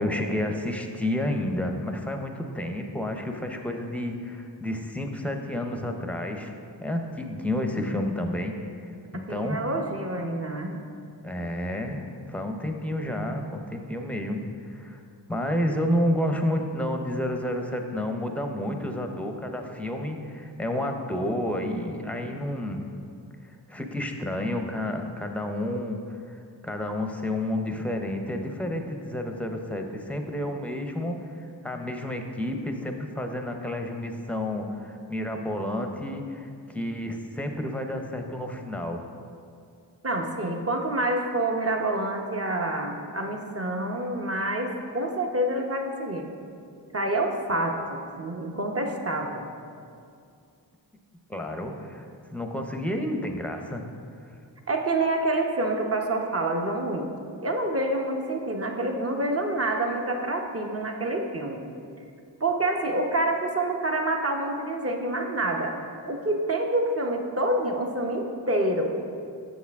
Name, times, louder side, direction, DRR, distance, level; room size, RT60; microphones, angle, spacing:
voice 1, 0.0-6.5 6.8-8.5 9.1-9.6 11.2-15.0 15.3-22.8 23.7-26.4 26.6-31.2 31.6-39.0 51.3-52.1 52.3-53.8, left 1 dB, 5° left, 4 dB, 0.7 m, -30 dB
voice 2, 9.1-10.9 40.0-46.3 46.9-49.4 54.7-57.1 57.4-61.6 62.4-65.7 66.1-68.9, right 1 dB, 30° right, 2 dB, 0.9 m, -27 dB
7.2 x 6.6 x 3.5 m, 2.4 s
cardioid pair, 45°, 44 cm